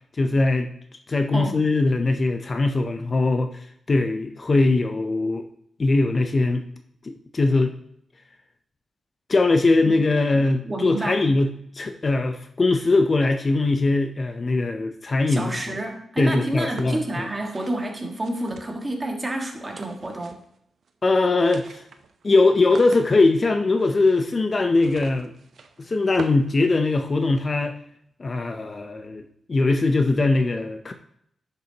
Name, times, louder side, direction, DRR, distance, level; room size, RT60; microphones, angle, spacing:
voice 1, 0.2-0.7 1.1-5.5 5.8-6.6 7.0-7.7 9.3-15.8 16.2-17.3 21.0-21.8 22.2-25.3 25.8-27.8 28.2-29.2 29.5-30.9, left 3 dB, 35° left, 6 dB, 0.6 m, -21 dB
voice 2, 10.3-11.3 15.3-20.4, right 1 dB, 20° right, 2 dB, 1.5 m, -29 dB
sound 1, 16.5-19.0 19.6-20.6 20.8-20.9 21.2-27.4, right 5 dB, 65° right, 0.7 m, -43 dB
10.5 x 6.7 x 2.9 m, 0.71 s
wide cardioid pair, 120°, 0 cm